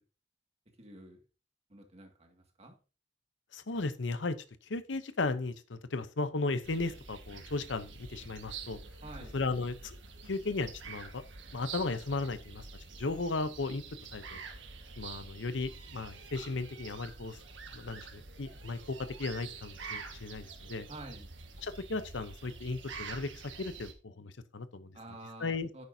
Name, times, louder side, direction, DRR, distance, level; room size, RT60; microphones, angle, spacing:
voice 1, 0.8-1.2 1.7-2.7 9.0-9.4 20.9-21.3 24.9-25.8, right 1 dB, 35° right, 3 dB, 2.1 m, -48 dB
voice 2, 3.5-4.4 4.7-8.8 9.3-9.9 10.3-11.2 11.5-12.6 13.0-13.8 14.1-14.4 15.0-17.4 17.7-20.9 21.6-24.9 25.4-25.7, left 3 dB, 75° left, 13 dB, 0.8 m, -35 dB
sound 1, 6.6-23.9, right 4 dB, 85° right, 1.7 m, -47 dB
9.7 x 9.1 x 2.8 m, 0.34 s
head